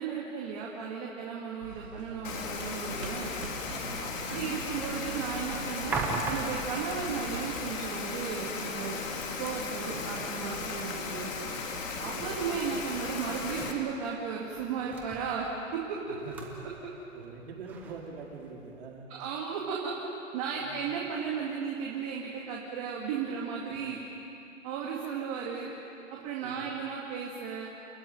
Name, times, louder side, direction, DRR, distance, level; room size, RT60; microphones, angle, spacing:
voice 1, 0.0-3.3 4.3-9.0 9.4-11.3 12.0-16.0 19.2-19.9 20.3-24.0 24.6-25.7 26.1-27.7, right 6 dB, 25° right, -3 dB, 2.2 m, -35 dB
sound 1, 1.6-7.6, right 3 dB, 85° right, 5.3 m, -46 dB
Rain, 2.2-13.7, left 4 dB, 75° left, 3.5 m, -36 dB
voice 2, 3.7-4.2 9.8-10.0 10.5-10.7 12.0-12.3 16.0-16.5 17.1-19.1 20.6-20.9 23.7-23.9 26.4-26.7, right 4 dB, 50° right, -2 dB, 4.9 m, -45 dB
sound 2, 5.4-18.8, right 3 dB, 5° right, 0.7 m, -43 dB
29.0 x 15.0 x 9.3 m, 3.0 s
hypercardioid pair, 170°, 39 cm